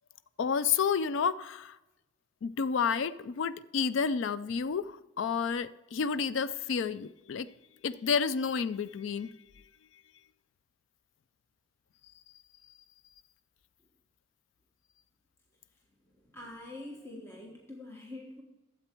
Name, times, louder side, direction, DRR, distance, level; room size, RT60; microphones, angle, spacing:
voice 1, 0.4-1.8 2.4-7.5 7.8-9.3, left 6 dB, 70° left, 15 dB, 0.4 m, -30 dB
voice 2, 16.0-18.4, left 1 dB, 15° left, -1 dB, 1.3 m, -45 dB
12.0 x 7.9 x 4.5 m, 1.0 s
head